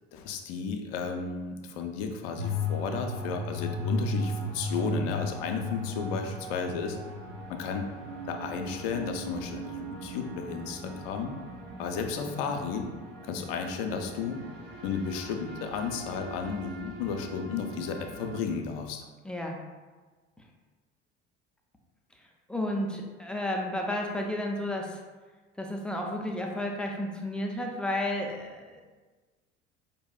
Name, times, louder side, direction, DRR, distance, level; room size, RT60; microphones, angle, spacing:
voice 1, 0.1-7.0 7.5-7.8 8.3-11.4 11.8-12.9 13.2-14.4 14.8-19.1, left 5 dB, 60° left, 4 dB, 0.5 m, -33 dB
sound 1, 2.4-18.4, left 1 dB, 60° right, 0.8 m, -37 dB
voice 2, 19.2-19.6 22.5-25.0 25.6-28.8, left 1 dB, 5° left, 0 dB, 0.3 m, -32 dB
4.6 x 2.7 x 2.2 m, 1.3 s
figure-of-eight pair, 60°, 34 cm